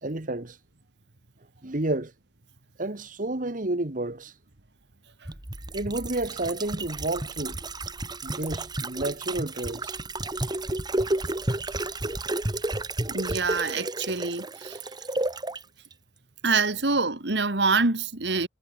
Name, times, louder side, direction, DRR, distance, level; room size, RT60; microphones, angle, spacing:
voice 1, 0.0-0.6 1.6-2.1 2.8-4.3 5.7-7.6 8.2-10.0, right 2 dB, 50° right, 1.6 m, -30 dB
sound 1, 5.3-15.6 15.9-16.0, right 2 dB, 25° right, 1.7 m, -31 dB
voice 2, 13.1-14.8 16.4-18.5, right 4 dB, 70° right, 2.1 m, -26 dB
head